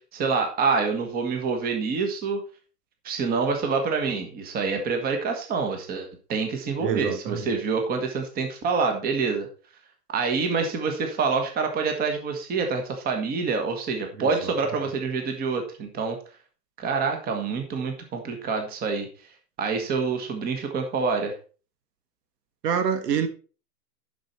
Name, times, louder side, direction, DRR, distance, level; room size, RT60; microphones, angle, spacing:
voice 1, 0.1-2.4 3.0-9.5 10.1-16.2 16.8-19.1 19.6-21.3, right 4 dB, 20° right, 1.5 m, -26 dB
voice 2, 6.8-7.5 14.2-14.5 22.6-23.3, right 7 dB, 75° right, 1.7 m, -26 dB
10.0 x 6.0 x 4.2 m
hypercardioid pair, 150°, 48 cm